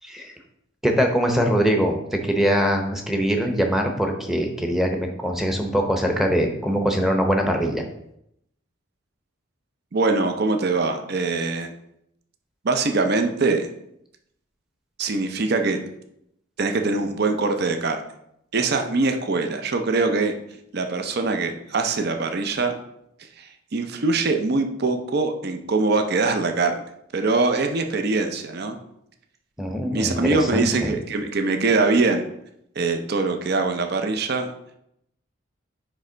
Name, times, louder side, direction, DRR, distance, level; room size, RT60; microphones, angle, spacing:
voice 1, 0.8-7.8 29.6-30.9, equal, ahead, 2 dB, 0.7 m, -22 dB
voice 2, 9.9-11.7 12.6-13.7 15.0-15.8 16.6-18.0 18.5-20.3 20.7-22.8 23.4-26.8 27.1-28.8 29.8-32.2 32.8-34.5, right 3 dB, 50° right, 6 dB, 0.6 m, -23 dB
9.6 x 3.2 x 3.9 m, 0.77 s
head